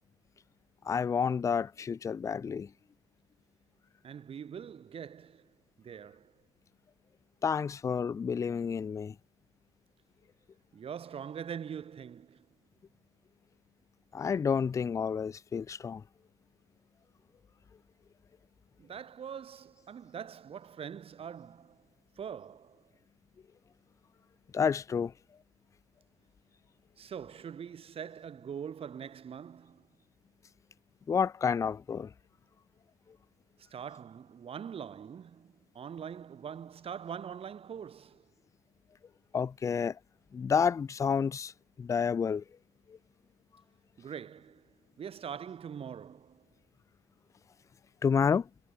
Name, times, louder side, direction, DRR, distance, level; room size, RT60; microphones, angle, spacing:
voice 1, 0.9-2.7 7.4-9.1 14.1-16.0 24.5-25.1 31.1-32.1 39.3-40.0 40.3-41.5 41.8-42.4 48.0-48.5, left 6 dB, 20° left, 0.4 m, -29 dB
voice 2, 4.0-5.5 5.8-6.3 10.7-12.4 18.8-21.8 22.2-22.8 27.0-29.9 33.7-38.2 44.0-44.7 45.0-46.4, right 8 dB, 40° right, 3.2 m, -43 dB
figure-of-eight pair, 55°, 15 cm